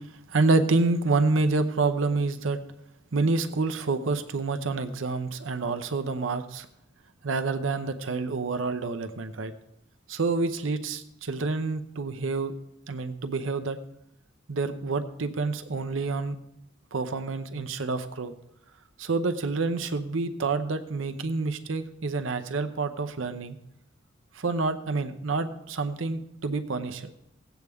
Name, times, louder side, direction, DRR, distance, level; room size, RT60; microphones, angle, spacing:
voice 1, 0.3-2.6 3.1-6.7 7.2-9.5 10.1-12.5 12.9-13.8 14.5-16.3 16.9-18.3 19.0-23.6 24.4-27.2, right 3 dB, 90° right, 9 dB, 0.8 m, -28 dB
17.0 x 8.1 x 3.5 m, 0.81 s
head